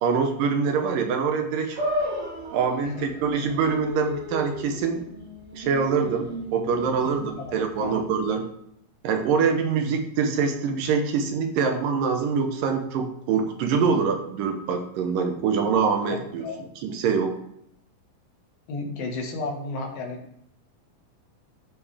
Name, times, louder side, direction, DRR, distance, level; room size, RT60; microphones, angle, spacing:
voice 1, 0.0-1.8 2.5-5.0 5.5-8.5 9.0-16.5 16.8-17.3, right 5 dB, 75° right, 5 dB, 2.5 m, -24 dB
sound 1, 1.8-8.2, equal, 50° right, 4.0 m, -34 dB
voice 2, 7.0-8.0 16.4-16.6 18.7-20.4, left 3 dB, 80° left, 1 dB, 3.5 m, -33 dB
14.0 x 5.3 x 3.5 m, 0.72 s
omnidirectional pair, 4.1 m